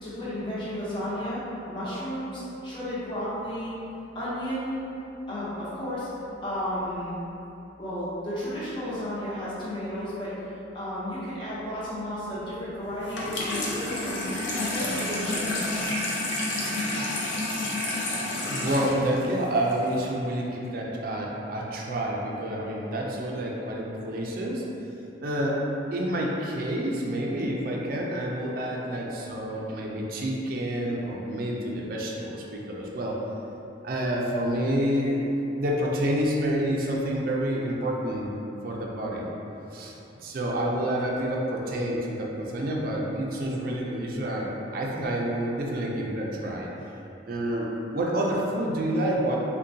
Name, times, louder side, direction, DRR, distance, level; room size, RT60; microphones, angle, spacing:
voice 1, 0.0-1.4 1.7-3.7 4.1-4.8 5.3-6.1 6.4-7.2 7.8-14.2 14.5-15.7, equal, 25° left, -10 dB, 0.7 m, -33 dB
Water tap faucet / Sink (filling or washing), 13.0-20.1, left 1 dB, 75° left, 0.5 m, -30 dB
voice 2, 18.5-24.7 25.2-25.6 25.9-33.2 33.8-35.3 35.6-38.3 38.6-39.3 39.7-46.7 47.2-49.4, right 1 dB, 50° right, -2 dB, 0.4 m, -28 dB
3.8 x 2.2 x 2.6 m, 2.9 s
head